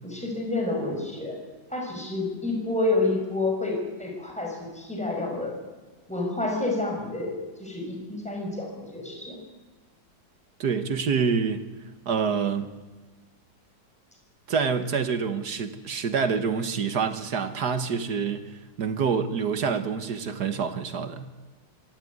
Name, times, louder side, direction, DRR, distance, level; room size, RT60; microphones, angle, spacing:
voice 1, 0.0-1.4 1.7-5.5 6.1-9.4, left 2 dB, 5° left, 0 dB, 5.8 m, -29 dB
voice 2, 10.6-11.7 12.0-12.7 14.5-21.3, right 6 dB, 60° right, 10 dB, 1.7 m, -27 dB
24.5 x 13.5 x 9.5 m, 1.3 s
omnidirectional pair, 2.1 m